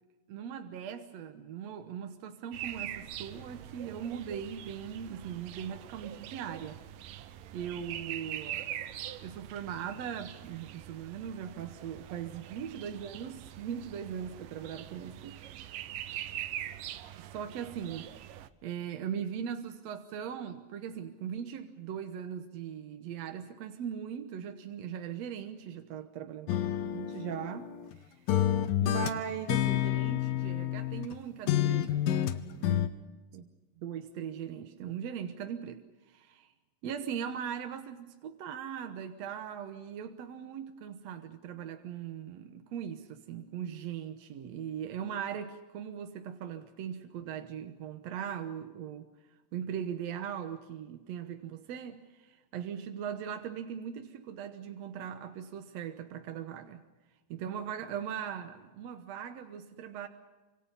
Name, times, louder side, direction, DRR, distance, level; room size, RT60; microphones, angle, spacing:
voice 1, 0.3-6.8 7.5-8.8 9.2-15.4 17.2-18.1 18.6-26.5 26.8-27.7 28.0-28.1 28.8-32.0 32.6-32.9 33.3-33.5 33.8-36.5 36.8-49.1 49.5-56.8 57.3-60.1, right 8 dB, 65° right, 2.0 m, -39 dB
sound 1, 2.5-18.5, right 12 dB, 80° right, 2.6 m, -43 dB
sound 2, 26.5-28.0 28.3-31.2 31.5-32.9, left 11 dB, 90° left, 2.8 m, -29 dB
27.5 x 26.0 x 5.5 m
omnidirectional pair, 3.9 m